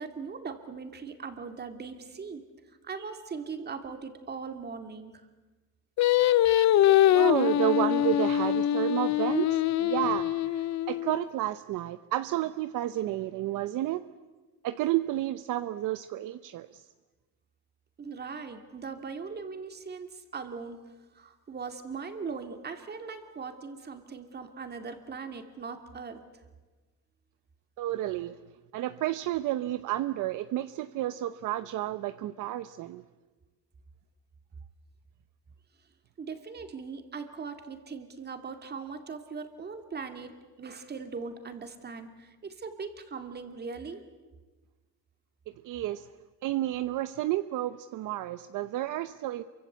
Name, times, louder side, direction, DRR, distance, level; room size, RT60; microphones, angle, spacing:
voice 1, 0.0-2.4 2.8-5.1 18.0-20.8 21.2-26.2 36.2-44.0, right 5 dB, 25° right, 7 dB, 2.6 m, -40 dB
Singing, 6.0-11.3, left 12 dB, 50° left, 0.8 m, -24 dB
voice 2, 7.1-14.0 14.6-16.9 27.8-28.4 28.7-33.0 45.6-46.1 46.4-49.4, right 14 dB, 55° right, 12 dB, 0.9 m, -31 dB
27.5 x 24.5 x 8.2 m, 1.2 s
cardioid pair, 145°, 37 cm